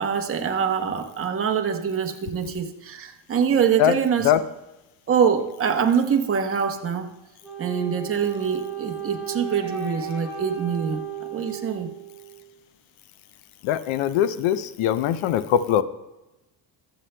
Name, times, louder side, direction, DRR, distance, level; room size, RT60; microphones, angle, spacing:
voice 1, 0.0-4.3 5.1-7.1 7.6-11.9, right 7 dB, 30° right, 4 dB, 0.8 m, -24 dB
Wind instrument woodwind instrument, 7.4-12.5, right 7 dB, 5° right, 3.3 m, -34 dB
voice 2, 13.6-15.8, left 10 dB, 85° left, 13 dB, 0.7 m, -21 dB
22.5 x 7.9 x 2.2 m, 0.99 s
cardioid pair, 165°, 47 cm